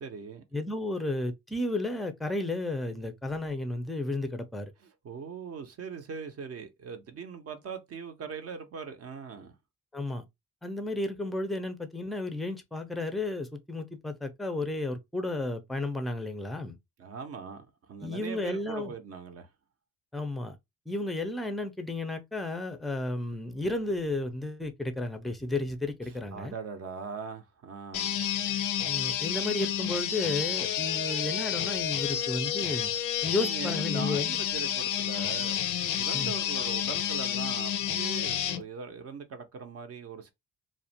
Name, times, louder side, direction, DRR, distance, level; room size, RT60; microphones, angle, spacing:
voice 1, 0.0-0.4 4.8-9.5 17.0-19.5 26.3-28.2 33.4-40.3, right 5 dB, 55° right, 0.6 m, -41 dB
voice 2, 0.5-4.7 9.9-10.2 10.6-16.8 18.0-18.9 20.1-20.6 20.9-26.5 28.8-32.9 33.2-34.4 36.1-36.4, left 2 dB, ahead, 0.4 m, -33 dB
sound 1, 27.9-38.6, left 10 dB, 90° left, 0.5 m, -30 dB
2.4 x 2.1 x 2.7 m
cardioid pair, 90°, 30 cm